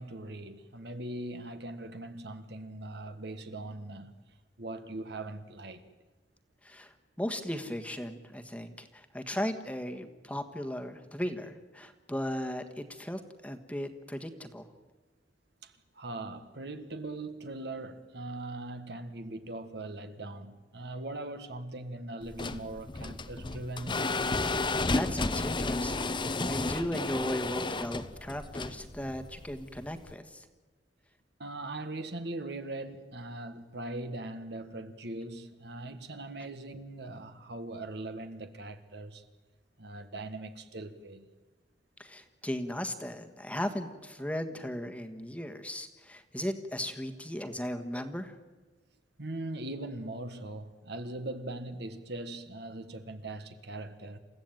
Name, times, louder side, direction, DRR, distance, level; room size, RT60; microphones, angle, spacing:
voice 1, 0.0-4.2 4.6-5.8 15.6-24.0 31.4-39.2 39.8-41.3 49.2-54.2, right 2 dB, 65° right, 1.7 m, -40 dB
voice 2, 6.6-14.7 24.9-30.5 42.0-48.4, equal, 10° left, 1.5 m, -37 dB
sound 1, 22.2-30.1, left 2 dB, 25° left, 0.9 m, -32 dB
28.5 x 15.5 x 9.1 m
head